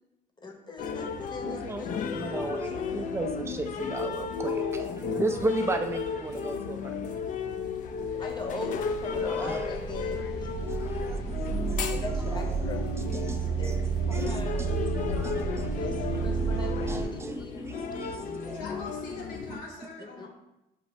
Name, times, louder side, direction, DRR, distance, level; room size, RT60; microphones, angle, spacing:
voice 1, 0.4-2.0 8.2-10.5 11.9-12.8 13.1-13.3 13.6-13.7 14.1-14.8 15.7-17.7 20.0-20.3, left 2 dB, 25° left, 0.8 m, -40 dB
sound 1, 0.8-19.6, left 5 dB, 50° left, 0.4 m, -34 dB
voice 2, 1.4-1.8 2.1-4.6 5.1-7.1 9.1-9.6 10.7-12.7 13.0-13.8 14.1-18.9 19.5-19.9, right 2 dB, 15° right, 0.4 m, -36 dB
voice 3, 4.4-5.6 18.4-20.3, left 3 dB, 90° left, 1.3 m, -42 dB
sound 2, 8.0-8.2 8.5-17.1, right 5 dB, 70° left, 1.0 m, -31 dB
6.0 x 2.5 x 3.1 m
cardioid pair, 110°, 17 cm